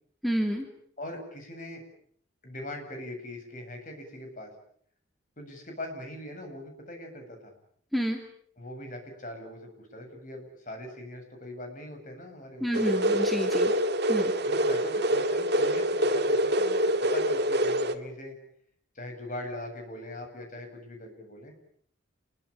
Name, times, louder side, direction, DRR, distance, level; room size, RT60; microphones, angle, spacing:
voice 1, 0.2-0.7 7.9-8.2 12.6-13.7 14.1-14.3, equal, ahead, 3 dB, 2.5 m, -29 dB
voice 2, 1.0-1.8 2.4-4.5 5.4-7.5 8.6-12.8 14.4-18.4 18.9-21.5, left 1 dB, 40° left, 4 dB, 8.0 m, -41 dB
sound 1, 12.7-18.0, right 1 dB, 55° right, 2.1 m, -25 dB
28.0 x 22.5 x 8.5 m, 0.63 s
head